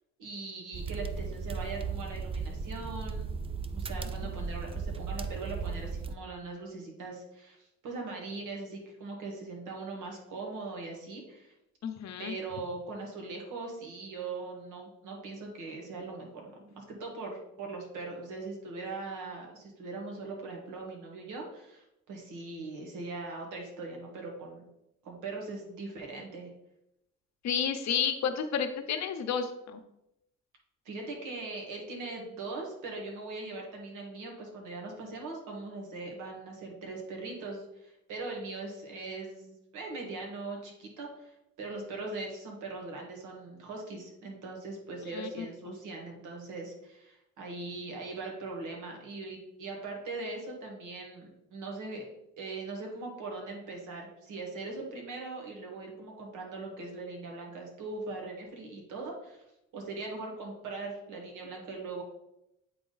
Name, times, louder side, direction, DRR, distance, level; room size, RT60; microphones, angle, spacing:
voice 1, 0.2-3.3 3.7-11.5 12.2-24.6 25.0-26.5 30.8-52.0 52.4-59.4 59.7-62.0, right 3 dB, 85° right, 0 dB, 1.8 m, -40 dB
sound 1, 0.7-6.1, right 5 dB, 20° right, 0.4 m, -36 dB
voice 2, 11.8-12.3 27.4-29.8 45.1-45.5, left 7 dB, 65° left, 7 dB, 0.8 m, -31 dB
8.4 x 3.6 x 4.0 m, 0.86 s
cardioid pair, 90°, 30 cm